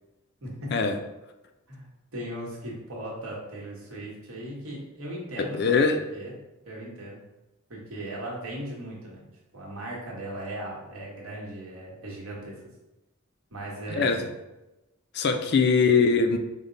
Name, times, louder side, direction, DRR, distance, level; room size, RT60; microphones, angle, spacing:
voice 1, 1.7-6.3 6.6-7.2 7.7-9.3 9.5-12.6 13.5-14.2, right 1 dB, 85° right, -3 dB, 1.3 m, -38 dB
voice 2, 5.4-6.0 14.0-14.3 15.1-16.4, left 4 dB, 50° left, 6 dB, 0.4 m, -22 dB
5.1 x 2.1 x 3.9 m, 1.0 s
head